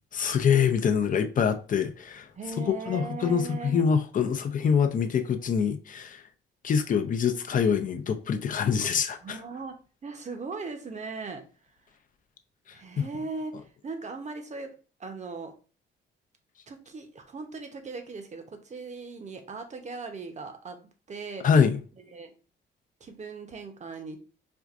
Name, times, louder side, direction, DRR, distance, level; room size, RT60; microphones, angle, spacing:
voice 1, 0.1-2.3 2.6-6.2 6.6-9.4 13.0-13.1 21.4-21.8, left 7 dB, 40° left, 0.5 m, -25 dB
voice 2, 2.4-3.9 9.2-9.8 10.0-11.4 12.7-13.5 13.8-14.7 15.0-15.5 16.7-20.8 21.1-21.5 22.1-22.3 23.0-24.2, right 4 dB, 35° right, 0.8 m, -38 dB
4.4 x 2.5 x 2.4 m
cardioid pair, 90°, 20 cm